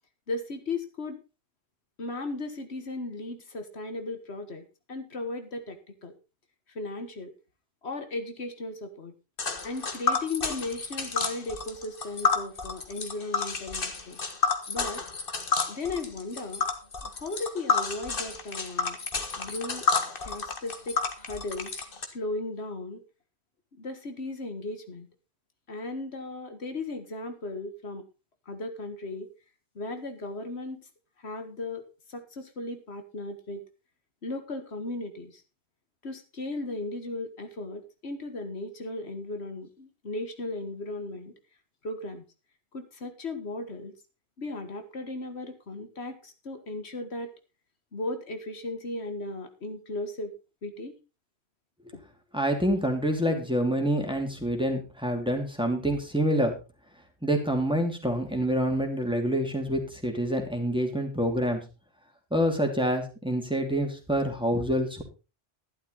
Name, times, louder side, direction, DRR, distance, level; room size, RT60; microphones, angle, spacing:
voice 1, 0.3-1.2 2.0-6.1 6.7-7.3 7.8-9.1 9.6-14.2 14.7-15.0 15.7-16.6 17.0-19.0 19.4-19.9 20.2-21.8 22.1-23.0 23.7-25.1 25.7-28.0 28.5-29.3 29.8-30.9 31.2-33.6 34.2-35.4 36.0-41.3 41.8-42.2 42.7-43.9 44.4-47.3 47.9-50.3 50.6-50.9 51.9-52.0, left 2 dB, 80° left, 7 dB, 1.9 m, -36 dB
Tick, 9.4-22.0, left 4 dB, 55° left, 1.8 m, -30 dB
voice 2, 52.3-56.5 57.2-61.6 62.3-65.0, equal, 5° right, 2 dB, 2.8 m, -27 dB
12.5 x 11.5 x 4.0 m, 0.31 s
omnidirectional pair, 1.1 m